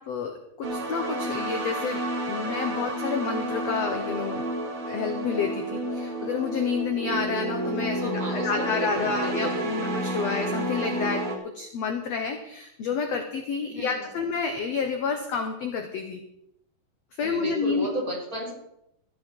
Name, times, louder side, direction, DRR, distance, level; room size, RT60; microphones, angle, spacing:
voice 1, 0.0-4.5 4.9-16.2 17.2-17.9, left 5 dB, 70° left, 5 dB, 1.6 m, -30 dB
sound 1, 0.6-11.4, right 1 dB, 45° right, 2.4 m, -30 dB
voice 2, 8.0-9.6 13.7-14.1 17.2-18.5, equal, 20° right, -4 dB, 4.1 m, -33 dB
15.0 x 11.5 x 4.5 m, 0.78 s
omnidirectional pair, 4.4 m